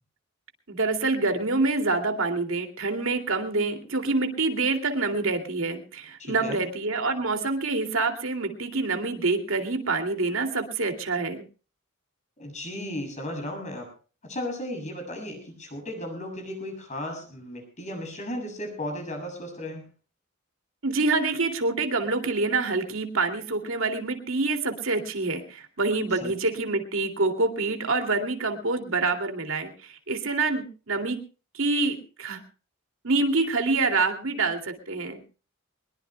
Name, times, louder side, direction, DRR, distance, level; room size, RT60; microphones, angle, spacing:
voice 1, 0.7-11.4 20.8-31.2 31.5-32.4 33.0-35.2, right 3 dB, 70° right, 4 dB, 2.5 m, -26 dB
voice 2, 6.2-6.6 12.4-13.9 14.2-19.9 26.2-26.3, left 1 dB, 35° left, 3 dB, 7.5 m, -35 dB
23.0 x 21.5 x 2.2 m, 0.36 s
head